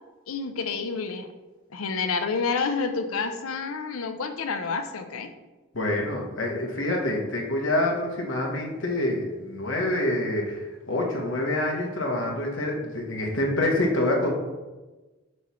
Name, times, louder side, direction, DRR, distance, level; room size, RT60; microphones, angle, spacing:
voice 1, 0.3-1.3 1.7-5.3, left 4 dB, 80° left, 8 dB, 0.6 m, -29 dB
voice 2, 5.7-14.3, left 1 dB, 65° left, 0 dB, 1.2 m, -26 dB
6.2 x 3.1 x 5.7 m, 1.2 s
head